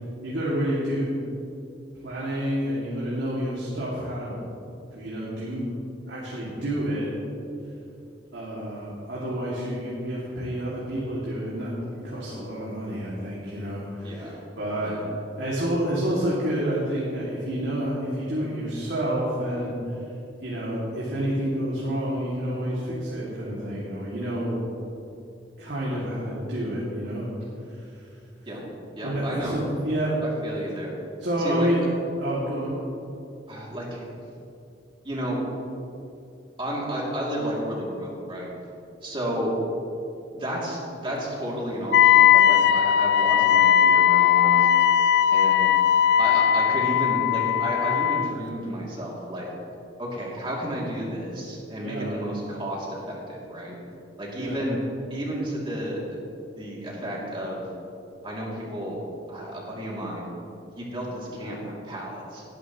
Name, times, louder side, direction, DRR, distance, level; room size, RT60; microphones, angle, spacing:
voice 1, 0.2-1.1 2.0-4.4 4.9-5.7 6.1-7.2 8.3-11.8 12.0-14.9 15.4-19.7 20.4-24.6 25.6-27.3 27.7-27.9 29.0-30.2 31.2-31.8 32.2-32.8 51.8-52.2 54.4-54.6, equal, 75° right, -7 dB, 2.5 m, -29 dB
voice 2, 14.0-14.3 14.8-15.0 28.5-28.6 29.0-29.6 30.2-30.9 31.4-31.7 33.5-34.0 35.0-35.4 36.6-38.5 39.0-39.5 40.3-44.7 45.3-45.7 46.2-49.5 50.0-53.7 54.2-54.8 55.1-56.2 56.5-57.6 58.2-59.0 59.3-60.3 60.8-62.4, equal, 30° right, -4 dB, 2.8 m, -32 dB
Wind instrument woodwind instrument, 41.9-48.4, left 9 dB, 65° left, 0.3 m, -19 dB
18.5 x 10.5 x 3.1 m, 2.6 s
head